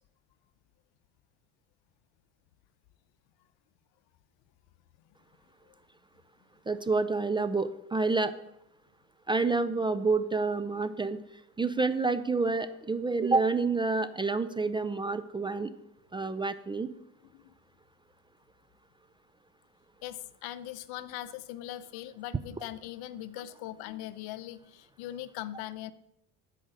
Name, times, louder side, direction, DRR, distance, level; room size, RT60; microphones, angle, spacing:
voice 1, 6.7-8.3 9.3-11.2 11.6-15.7 16.1-16.9, right 3 dB, 15° right, 13 dB, 0.4 m, -28 dB
voice 2, 20.0-25.9, left 13 dB, 70° left, 15 dB, 0.7 m, -40 dB
13.0 x 5.1 x 6.7 m, 0.81 s
supercardioid pair, 100°, 39 cm